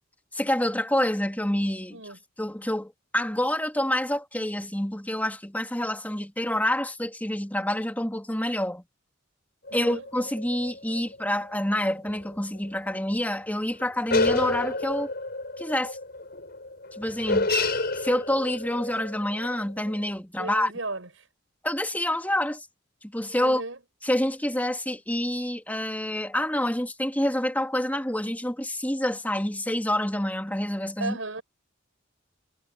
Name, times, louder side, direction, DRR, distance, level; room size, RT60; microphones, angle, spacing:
voice 1, 0.3-2.0 2.4-8.8 9.7-15.1 15.6-16.0 17.0-17.5 17.9-20.7 21.6-22.7 23.1-23.6 24.0-31.2, left 1 dB, 10° left, 3.1 m, -27 dB
sound 1, 9.7-11.4 12.1-12.3 12.7-12.8 13.8-20.1, left 2 dB, 55° left, 6.3 m, -29 dB
voice 2, 9.7-10.1 20.4-21.3 23.4-23.8 31.0-31.4, right 2 dB, 85° right, 6.5 m, -35 dB
head